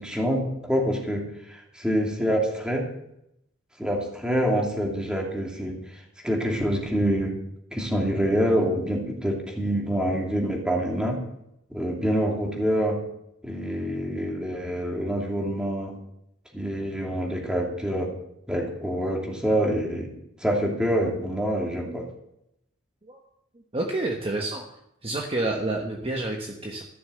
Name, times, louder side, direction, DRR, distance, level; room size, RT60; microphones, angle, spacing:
voice 1, 0.0-2.8 3.8-7.3 7.7-11.2 11.7-13.0 13.4-15.9 16.5-18.1 18.5-20.1 20.4-22.0, equal, 5° right, -1 dB, 2.7 m, -26 dB
voice 2, 23.7-24.7 25.0-26.8, right 2 dB, 25° right, 1 dB, 1.3 m, -29 dB
14.5 x 7.0 x 8.0 m, 0.80 s
head